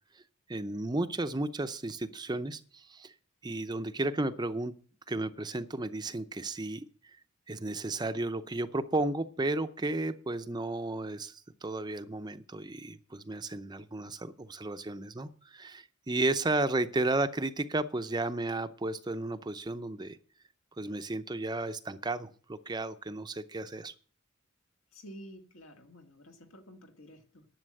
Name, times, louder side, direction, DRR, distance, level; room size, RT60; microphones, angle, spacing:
voice 1, 0.5-3.1 3.4-4.7 5.1-6.9 7.5-20.2 20.8-23.9, right 2 dB, 20° right, 0.6 m, -33 dB
voice 2, 24.9-27.5, equal, 70° left, 1.9 m, -51 dB
11.0 x 7.3 x 7.6 m
head